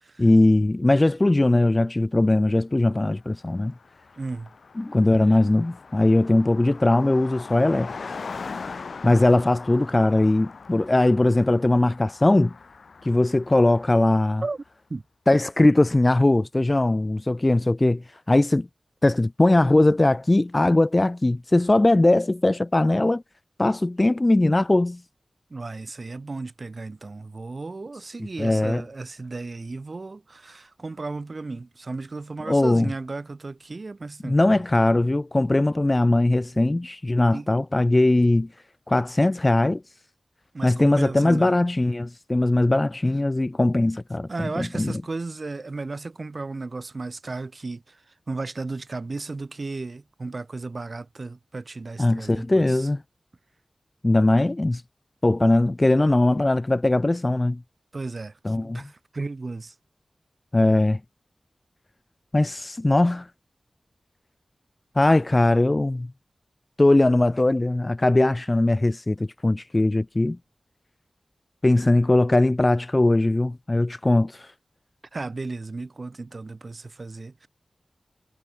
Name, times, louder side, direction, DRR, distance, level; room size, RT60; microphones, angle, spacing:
voice 1, 0.2-3.7 4.8-7.9 9.0-12.5 13.1-14.4 15.3-18.0 18.3-18.7 19.0-23.2 23.6-25.0 28.4-28.8 32.5-32.9 34.2-38.5 38.9-39.8 40.6-45.0 52.0-53.0 54.0-54.8 55.2-57.6 58.4-58.8 60.5-61.0 62.3-63.3 65.0-66.1 66.8-70.4 71.6-74.3, left 2 dB, 25° left, 0.5 m, -20 dB
Car passing by, 3.1-3.2 3.4-14.4, left 4 dB, 80° left, 2.5 m, -41 dB
voice 2, 4.2-4.5 14.4-14.6 14.9-15.0 25.5-34.6 36.6-36.8 37.3-37.5 40.5-41.5 44.3-48.0 48.3-52.9 54.6-54.8 57.9-59.7 75.1-77.5, right 3 dB, 45° right, 4.5 m, -34 dB
wide cardioid pair, 100°, 0 cm